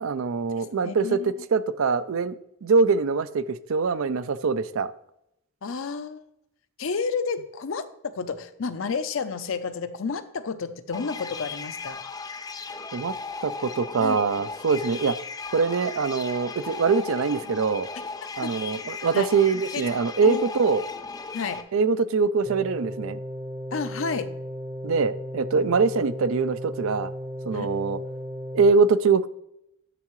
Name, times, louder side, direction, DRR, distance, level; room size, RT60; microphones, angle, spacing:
voice 1, 0.0-2.3 2.6-4.9 12.9-13.1 13.4-15.2 15.5-17.9 18.4-20.8 21.7-23.2 24.8-27.1 27.5-28.0 28.5-29.3, right 4 dB, 65° right, 0.4 m, -23 dB
voice 2, 0.6-1.3 5.6-6.3 6.8-12.0 14.0-14.2 18.4-18.5 19.1-19.3 19.7-19.8 20.2-20.4 21.3-21.6 23.7-24.3 27.5-27.7, left 5 dB, 60° left, 0.6 m, -31 dB
sound 1, 10.9-21.6, left 4 dB, 15° left, 0.4 m, -37 dB
sound 2, 22.5-28.7, equal, 25° right, 0.7 m, -35 dB
10.5 x 6.5 x 3.1 m
head